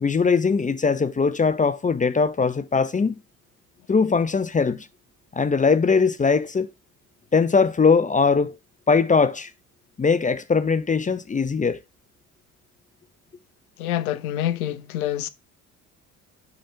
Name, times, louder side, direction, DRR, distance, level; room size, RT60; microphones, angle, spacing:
voice 1, 0.0-3.2 3.9-4.9 5.3-6.7 7.3-8.5 8.9-9.5 10.0-11.8, left 5 dB, 20° left, 0.7 m, -20 dB
voice 2, 13.8-15.3, left 12 dB, 80° left, 0.6 m, -26 dB
5.2 x 5.2 x 5.6 m
figure-of-eight pair, 55°, 43 cm